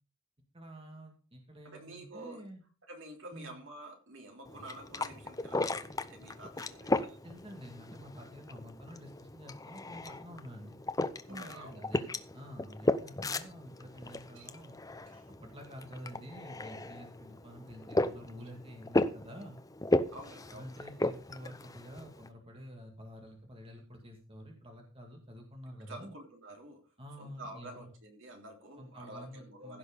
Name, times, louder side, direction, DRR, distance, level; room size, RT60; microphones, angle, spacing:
voice 1, 0.5-2.6 3.3-3.5 7.2-10.8 11.3-14.8 15.4-19.6 20.5-26.1 27.0-27.9 28.8-29.8, equal, 25° right, 2.1 m, -49 dB
voice 2, 1.6-2.5 2.9-7.2 11.3-11.8 14.3-14.5 15.1-15.3 20.1-20.7 25.9-29.8, right 1 dB, 65° right, 3.3 m, -49 dB
sound 1, 4.5-22.3, left 2 dB, 15° left, 0.6 m, -36 dB
16.0 x 6.1 x 5.2 m
head